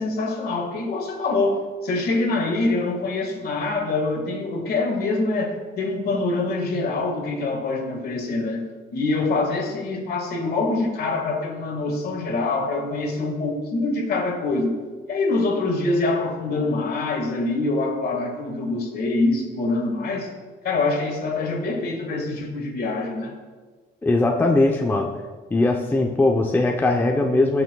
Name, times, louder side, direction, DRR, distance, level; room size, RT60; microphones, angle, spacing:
voice 1, 0.0-8.7 8.9-14.8 15.1-20.3 20.6-23.4, left 3 dB, 55° left, 3 dB, 1.6 m, -25 dB
voice 2, 24.0-25.2 25.5-27.6, left 2 dB, 10° left, 2 dB, 0.6 m, -20 dB
19.0 x 6.5 x 2.2 m, 1.4 s
cardioid pair, 130°, 19 cm